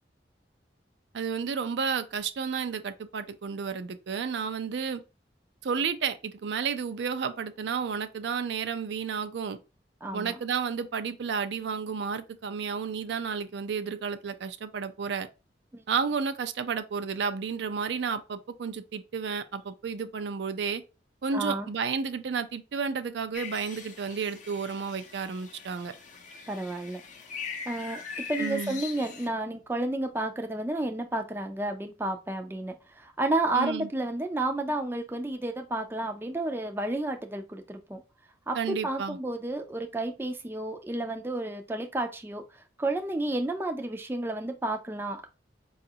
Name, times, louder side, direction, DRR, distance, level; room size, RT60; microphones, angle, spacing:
voice 1, 1.1-5.0 5.6-9.6 10.1-15.3 15.9-20.8 21.2-25.9 28.4-28.8 33.5-33.9 38.5-39.2, right 6 dB, 75° right, 0.4 m, -32 dB
voice 2, 10.0-10.4 15.7-15.8 21.3-21.7 26.5-27.0 27.7-28.0 28.3-38.0 38.5-38.6 38.8-42.4 42.8-45.3, right 2 dB, 15° right, 0.4 m, -31 dB
sound 1, 23.3-29.3, left 6 dB, 45° left, 0.6 m, -41 dB
4.8 x 2.4 x 2.7 m
head